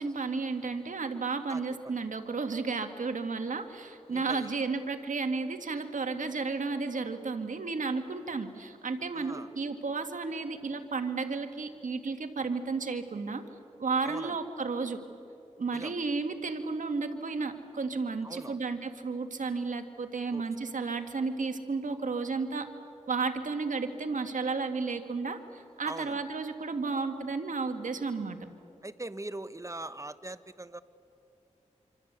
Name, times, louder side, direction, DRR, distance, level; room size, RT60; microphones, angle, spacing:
voice 1, 0.0-13.4 13.8-15.0 15.6-22.7 23.1-28.4, right 4 dB, 75° right, 7 dB, 2.1 m, -33 dB
voice 2, 1.5-2.0 4.1-4.6 9.1-9.5 14.0-14.4 15.7-15.9 18.2-18.6 20.3-20.4 25.8-26.2 28.8-30.8, right 2 dB, 25° right, 13 dB, 1.2 m, -41 dB
26.0 x 26.0 x 8.3 m, 2.8 s
cardioid pair, 40°, 13 cm